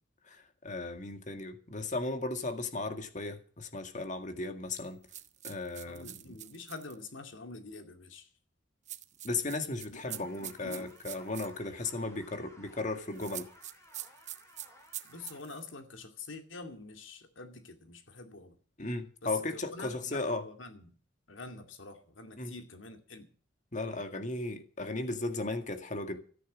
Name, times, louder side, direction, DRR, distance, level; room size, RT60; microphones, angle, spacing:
voice 1, 0.3-5.0 5.4-6.1 9.2-13.5 18.8-20.4 22.4-22.5 23.7-26.2, left 2 dB, 40° left, 2.0 m, -36 dB
sound 1, 5.1-7.0 8.9-11.5 13.1-15.6, right 12 dB, 40° right, 0.8 m, -44 dB
voice 2, 5.8-8.3 9.9-10.9 15.1-18.6 19.2-20.9 21.3-23.3, left 3 dB, 90° left, 2.4 m, -46 dB
sound 2, 10.1-15.4, left 1 dB, 15° left, 4.4 m, -58 dB
14.0 x 10.0 x 7.4 m
head